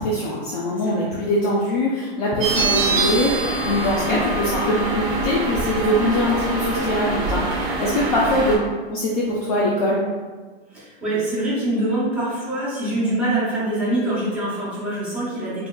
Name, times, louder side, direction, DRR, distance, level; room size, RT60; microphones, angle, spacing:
voice 1, 0.0-8.6 8.9-10.0, left 1 dB, 40° left, -5 dB, 0.4 m, -22 dB
sound 1, 2.4-8.6, right 2 dB, 35° right, 0.6 m, -24 dB
voice 2, 10.7-15.7, right 1 dB, 5° right, -12 dB, 1.0 m, -24 dB
3.5 x 2.2 x 2.2 m, 1.4 s
hypercardioid pair, 150°, 31 cm